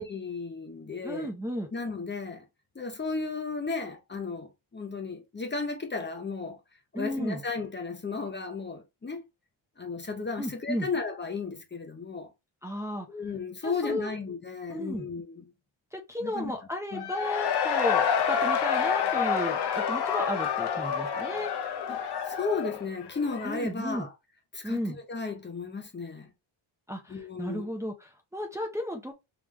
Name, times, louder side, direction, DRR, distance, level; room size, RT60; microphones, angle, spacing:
voice 1, 0.0-1.3 1.7-2.5 2.7-6.6 6.9-9.2 9.8-12.3 13.1-15.4 16.2-16.6 16.9-17.1 21.9-24.1 24.5-26.3 27.1-27.7, left 4 dB, 20° left, 0.8 m, -34 dB
voice 2, 1.0-1.7 6.9-7.4 10.4-10.9 12.6-13.1 13.6-14.1 14.7-15.1 15.9-21.5 23.4-24.1 24.6-25.0 26.9-29.1, equal, 5° right, 0.8 m, -34 dB
Cheering / Crowd, 16.9-23.7, left 7 dB, 55° left, 0.8 m, -28 dB
3.6 x 3.5 x 3.0 m
cardioid pair, 110°, 48 cm